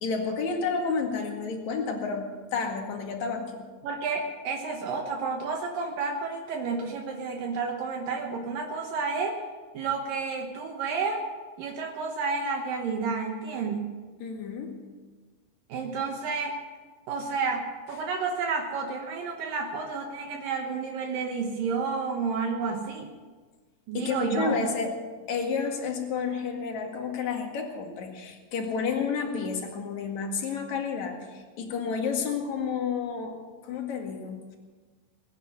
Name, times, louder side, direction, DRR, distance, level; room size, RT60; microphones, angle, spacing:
voice 1, 0.0-3.6 14.2-14.8 23.9-24.9 25.3-33.4 33.6-34.6, left 5 dB, 55° left, 2 dB, 3.0 m, -30 dB
voice 2, 3.8-9.4 9.7-11.2 11.6-14.0 15.7-16.6 17.1-23.1 23.9-24.6, right 4 dB, 70° right, 2 dB, 2.8 m, -30 dB
21.0 x 10.0 x 6.6 m, 1.4 s
omnidirectional pair, 4.3 m